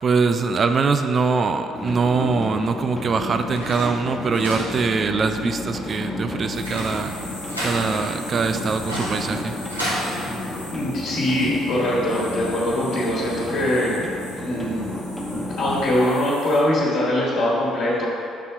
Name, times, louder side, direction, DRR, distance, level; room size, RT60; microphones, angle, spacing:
voice 1, 0.0-7.2 7.6-9.5, right 4 dB, 35° right, 8 dB, 0.4 m, -22 dB
sound 1, 1.7-16.0, left 1 dB, 5° left, 1.1 m, -32 dB
sound 2, 3.5-10.1, equal, 90° right, 1.0 m, -33 dB
sound 3, 6.5-16.6, left 1 dB, 85° left, 0.8 m, -41 dB
voice 2, 10.7-14.9 15.5-18.1, left 1 dB, 55° left, -9 dB, 1.5 m, -22 dB
6.1 x 4.2 x 5.7 m, 2.6 s
figure-of-eight pair, 50°, 0 cm